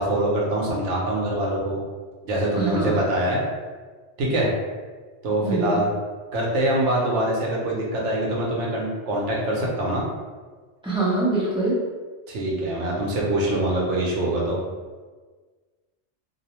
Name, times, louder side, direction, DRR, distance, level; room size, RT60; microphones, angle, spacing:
voice 1, 0.0-1.8 2.2-3.4 4.2-4.5 5.2-5.9 6.3-10.0 12.3-14.6, right 1 dB, 85° right, -3 dB, 1.0 m, -24 dB
voice 2, 2.6-3.0 5.4-5.8 10.8-11.8, right 2 dB, 10° right, -8 dB, 0.3 m, -24 dB
2.5 x 2.0 x 2.8 m, 1.4 s
omnidirectional pair, 1.2 m